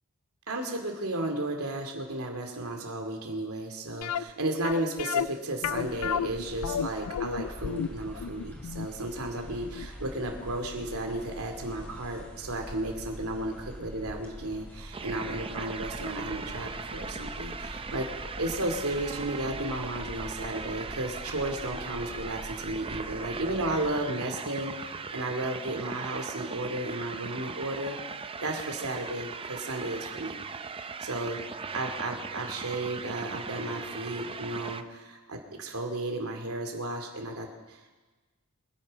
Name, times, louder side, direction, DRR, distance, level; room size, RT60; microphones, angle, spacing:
voice 1, 0.5-18.1 18.4-28.1 28.4-30.4 31.0-31.4 31.7-38.0, right 1 dB, 85° right, 3 dB, 2.6 m, -34 dB
sound 1, 4.0-10.9 11.1-11.2 11.8-11.9 12.2-12.3, left 8 dB, 80° left, 0.4 m, -33 dB
sound 2, 5.7-23.9, equal, 10° left, 2.7 m, -45 dB
sound 3, 14.9-34.8, right 5 dB, 25° right, 0.5 m, -39 dB
25.0 x 9.2 x 5.3 m, 1.2 s
head